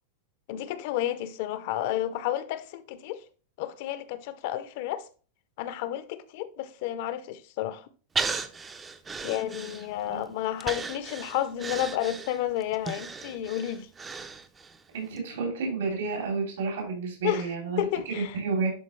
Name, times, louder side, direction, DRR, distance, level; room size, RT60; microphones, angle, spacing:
voice 1, 0.5-3.2 3.6-5.0 5.6-7.9 9.2-13.9 17.2-17.5 17.8-18.4, left 12 dB, 50° left, 0.6 m, -31 dB
Breathing, 8.2-10.1 10.6-14.8 15.2-15.3, right 4 dB, 15° right, 0.4 m, -35 dB
voice 2, 14.9-18.7, right 4 dB, 85° right, 2.9 m, -30 dB
10.5 x 4.0 x 3.1 m
supercardioid pair, 165°, 0 cm